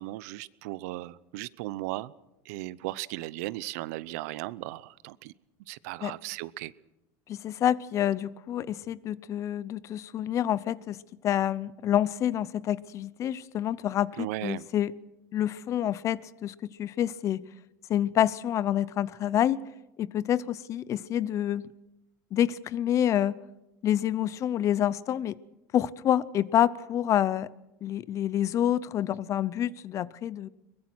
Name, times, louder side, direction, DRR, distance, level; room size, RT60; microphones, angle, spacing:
voice 1, 0.0-2.1 2.4-5.3 5.7-6.7 14.2-14.7, right 18 dB, 75° right, 19 dB, 0.7 m, -36 dB
voice 2, 7.3-14.9 15.3-17.4 17.9-19.6 20.0-21.6 22.3-23.4 23.8-25.4 25.7-27.5 27.8-30.5, left 11 dB, 35° left, 20 dB, 0.7 m, -27 dB
23.0 x 21.0 x 6.2 m, 0.95 s
supercardioid pair, 135°, 9 cm